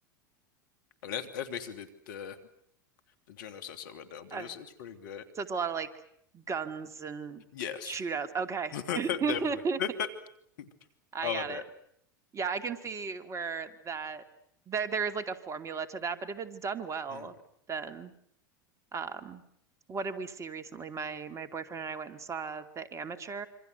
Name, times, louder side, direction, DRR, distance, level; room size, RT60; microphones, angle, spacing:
voice 1, 1.0-2.4 3.3-5.2 7.5-8.0 8.7-9.4 9.8-10.1 10.6-10.7 11.2-11.6 17.1-17.3, left 8 dB, 70° left, 9 dB, 2.8 m, -36 dB
voice 2, 5.3-5.9 6.3-7.4 7.8-9.8 11.1-11.6 12.3-14.2 14.7-17.4 17.7-18.1 18.9-19.4 19.9-23.5, right 5 dB, 30° right, 10 dB, 2.4 m, -35 dB
26.5 x 25.5 x 8.1 m, 0.69 s
hypercardioid pair, 90°, 11 cm